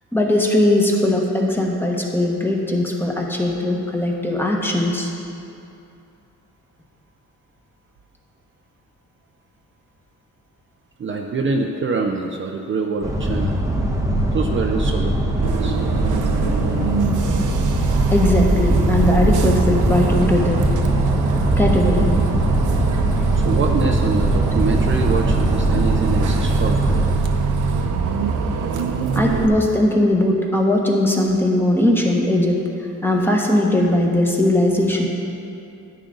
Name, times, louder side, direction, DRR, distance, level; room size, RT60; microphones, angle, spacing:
voice 1, 0.1-5.1 18.1-20.6 21.6-22.1 29.1-32.6 33.0-35.1, left 1 dB, 5° left, 0 dB, 1.2 m, -19 dB
voice 2, 11.0-13.6 14.3-15.8 23.3-27.0, right 4 dB, 40° right, 2 dB, 0.6 m, -25 dB
sound 1, 13.0-27.2, right 1 dB, 10° right, 0.9 m, -22 dB
Bus, 15.4-29.5, right 4 dB, 70° right, 0.8 m, -22 dB
10.0 x 9.3 x 3.9 m, 2.7 s
cardioid pair, 115°, 32 cm